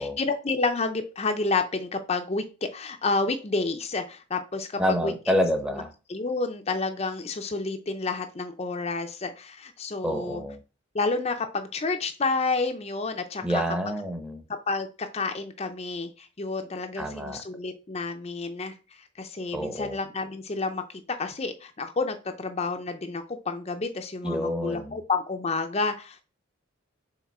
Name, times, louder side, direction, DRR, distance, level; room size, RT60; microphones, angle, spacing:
voice 1, 0.0-5.1 5.7-5.8 6.1-10.4 10.9-13.6 14.7-20.8 21.1-26.2, left 3 dB, 30° left, 0.5 m, -30 dB
voice 2, 4.8-5.9 10.0-10.6 13.4-14.4 17.0-17.4 19.5-20.0 24.2-25.0, equal, 5° right, 0.7 m, -28 dB
5.9 x 3.9 x 4.2 m
head